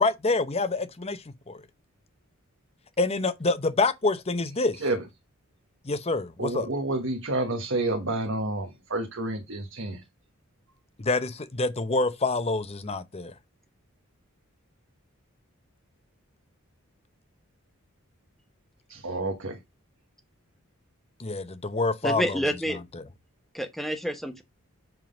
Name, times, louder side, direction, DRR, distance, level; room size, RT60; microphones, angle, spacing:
voice 1, 0.0-1.6 3.0-4.8 5.8-6.7 11.0-13.3 21.2-23.0, left 3 dB, 30° left, 0.7 m, -27 dB
voice 2, 6.4-10.0 18.9-19.6, right 2 dB, 60° right, 1.3 m, -29 dB
voice 3, 22.0-22.8 23.5-24.4, equal, ahead, 1.0 m, -28 dB
7.7 x 3.8 x 5.0 m
head